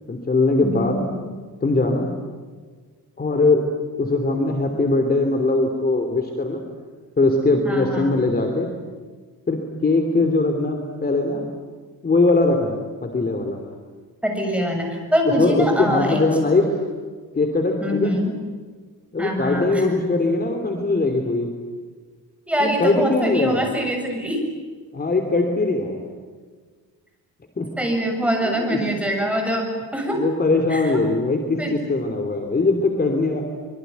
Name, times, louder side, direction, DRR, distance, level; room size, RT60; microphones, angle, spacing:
voice 1, 0.1-1.0 1.6-2.1 3.2-3.6 4.0-6.6 7.2-8.7 9.5-11.4 12.0-13.6 15.3-16.8 17.3-18.1 19.1-21.5 22.6-23.7 24.9-26.0 27.6-27.7 28.4-28.8 30.1-33.4, left 3 dB, 25° left, 4 dB, 3.1 m, -21 dB
voice 2, 0.6-1.1 7.7-8.1 14.2-16.2 17.8-18.3 19.2-19.8 22.5-24.4 27.8-29.7 29.9-30.2 30.7-30.8 31.6-31.7, equal, 5° right, 2 dB, 7.3 m, -23 dB
25.5 x 23.5 x 9.4 m, 1.5 s
cardioid pair, 140°, 38 cm